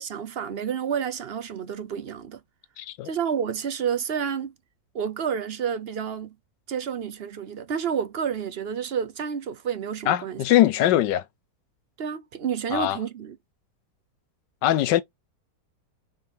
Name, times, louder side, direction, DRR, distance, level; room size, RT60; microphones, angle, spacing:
voice 1, 0.0-2.4 3.0-4.5 4.9-6.3 6.7-10.4 12.0-13.4, right 7 dB, 45° right, 0.8 m, -30 dB
voice 2, 2.8-3.1 10.1-11.2 12.7-13.0 14.6-15.0, left 13 dB, 85° left, 1.4 m, -21 dB
5.1 x 4.3 x 4.5 m
omnidirectional pair, 1.9 m